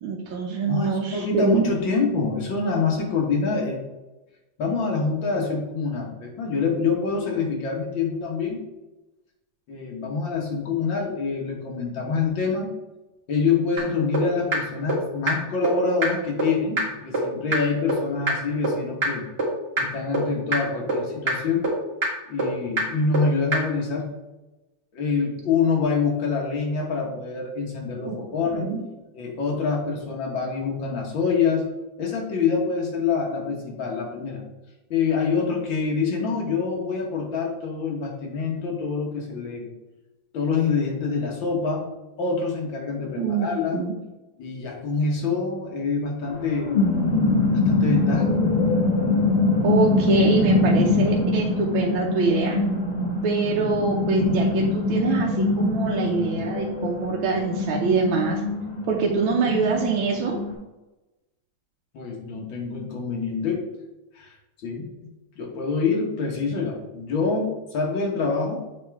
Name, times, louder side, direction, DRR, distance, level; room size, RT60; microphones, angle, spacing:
voice 1, 0.0-1.6 28.1-28.2 28.5-28.8 43.2-43.5 43.7-43.9 49.6-52.6 53.2-58.4 58.9-60.4, right 5 dB, 80° right, -1 dB, 1.5 m, -24 dB
voice 2, 0.7-3.8 4.6-8.6 9.7-12.7 13.3-19.2 19.8-21.7 22.3-24.1 24.9-28.7 29.1-31.7 32.0-34.4 34.9-39.7 40.3-41.8 42.2-43.8 44.4-46.7 47.5-48.4 61.9-63.6 64.2-64.3 64.6-64.9 65.4-68.6, left 4 dB, 65° left, -1 dB, 2.0 m, -26 dB
sound 1, 13.8-13.9 14.1-14.2 14.5-14.6 14.9-15.0 15.3-15.4 15.6-15.7 16.0-16.1 16.4-16.5 16.8-16.9 17.1-17.2 17.5-17.6 17.9-18.0 18.3-18.4 18.6-18.7 19.0-19.1 19.4-19.5 19.8-19.9 20.1-20.2 20.5-20.6 20.9-21.0 21.3-21.4 21.6-21.7 22.0-22.1 22.4-22.5 22.8-22.9 23.1-23.2 23.5-23.6, right 2 dB, 30° right, 1.7 m, -22 dB
sound 2, 46.3-60.5, left 2 dB, 35° left, 0.7 m, -23 dB
7.4 x 4.3 x 3.5 m, 1.0 s
omnidirectional pair, 2.3 m